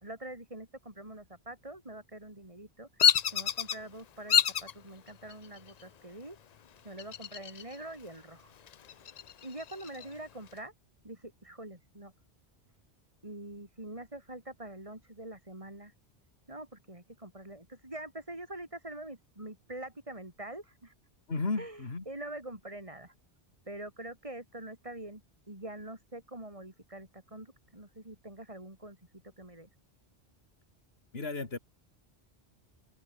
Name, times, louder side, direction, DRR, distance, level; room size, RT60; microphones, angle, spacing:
voice 1, 0.0-6.4 6.8-8.5 9.4-10.7 11.0-12.1 13.2-15.9 16.5-20.9 21.6-23.1 23.7-25.2 25.5-29.0 29.4-29.7, right 1 dB, 30° right, 5.1 m, -45 dB
Bird vocalization bird call bird song, 3.0-3.8 4.3-4.7 5.3-5.8 7.0-7.8 8.1-8.2 8.7-10.1, left 9 dB, 50° left, 0.6 m, -27 dB
voice 2, 21.3-22.0 31.1-31.6, left 3 dB, 70° left, 2.8 m, -33 dB
open air
omnidirectional pair, 1.1 m